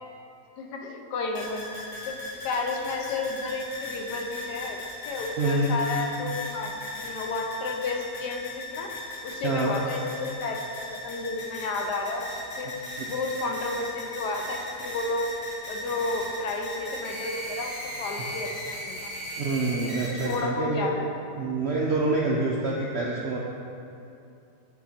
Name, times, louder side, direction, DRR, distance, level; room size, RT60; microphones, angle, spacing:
voice 1, 0.6-1.7 2.1-2.2 2.4-4.8 5.1-8.9 9.2-12.7 13.1-15.2 15.7-19.1 20.2-21.0, left 3 dB, 75° left, 1 dB, 1.3 m, -32 dB
sound 1, 1.3-20.4, left 1 dB, 55° left, 1.5 m, -37 dB
voice 2, 5.4-5.7 9.4-9.8 19.4-20.9 21.4-23.4, right 2 dB, 80° right, -3 dB, 0.5 m, -26 dB
8.5 x 3.8 x 4.2 m, 2.6 s
omnidirectional pair, 1.8 m